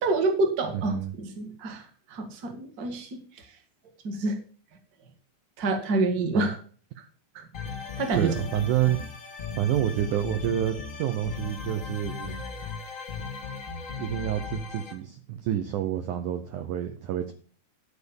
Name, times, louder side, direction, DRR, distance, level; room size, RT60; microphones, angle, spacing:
voice 1, 0.0-3.2 4.0-4.4 5.6-6.6 7.3-7.4 8.0-8.3, right 3 dB, 45° right, 4 dB, 1.3 m, -27 dB
voice 2, 0.7-1.1 6.3-6.5 8.1-9.0 9.6-12.4 14.0-17.3, right 11 dB, 80° right, 7 dB, 1.8 m, -28 dB
sound 1, 7.5-14.9, left 5 dB, 65° left, 0.7 m, -37 dB
12.0 x 4.4 x 7.0 m, 0.43 s
omnidirectional pair, 4.5 m